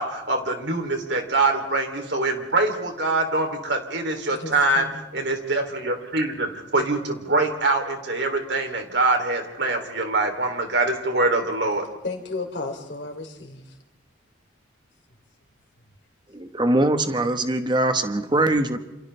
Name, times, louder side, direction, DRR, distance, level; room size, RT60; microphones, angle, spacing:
voice 1, 0.0-4.9 5.1-11.8, right 2 dB, 60° right, 3.0 m, -24 dB
voice 2, 4.3-5.0 12.0-13.6, left 3 dB, 65° left, 3.1 m, -33 dB
voice 3, 16.3-18.8, right 1 dB, 25° right, 1.2 m, -22 dB
28.5 x 27.5 x 3.3 m
head